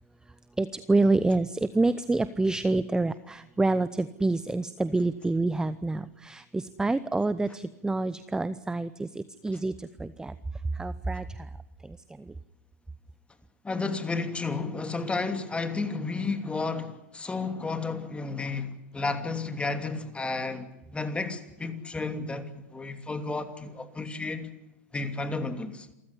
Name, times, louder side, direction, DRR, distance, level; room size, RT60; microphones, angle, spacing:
voice 1, 0.6-10.3 10.8-11.2, right 2 dB, 10° right, 0.8 m, -27 dB
voice 2, 13.6-24.5 24.9-25.9, left 3 dB, 10° left, 2.8 m, -32 dB
28.0 x 15.0 x 10.0 m
hypercardioid pair, 115°, 9 cm